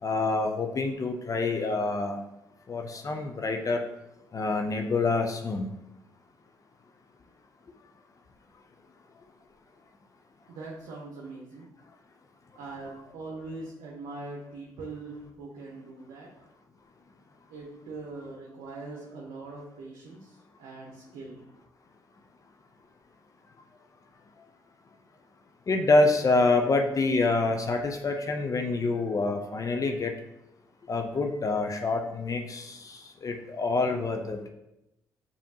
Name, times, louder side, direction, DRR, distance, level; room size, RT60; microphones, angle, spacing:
voice 1, 0.0-2.2 2.7-3.8 4.3-5.7 25.7-30.1 30.9-34.4, left 3 dB, 40° left, 4 dB, 0.5 m, -26 dB
voice 2, 10.5-11.7 12.6-16.3 17.5-21.4, right 3 dB, 75° right, -2 dB, 0.7 m, -42 dB
5.0 x 2.8 x 2.7 m, 0.88 s
hypercardioid pair, 50°, 9 cm